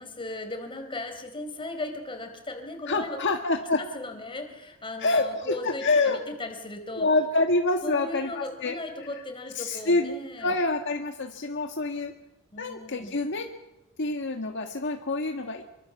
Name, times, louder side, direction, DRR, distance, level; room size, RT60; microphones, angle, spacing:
voice 1, 0.0-3.3 3.8-7.1 7.8-10.6 12.5-13.2, left 2 dB, 25° left, 5 dB, 4.3 m, -37 dB
voice 2, 2.9-3.8 5.0-6.2 7.0-8.8 9.5-10.1 10.4-12.1 12.6-13.5 14.0-15.6, left 2 dB, 55° left, 4 dB, 1.6 m, -26 dB
25.5 x 23.5 x 7.2 m, 0.91 s
head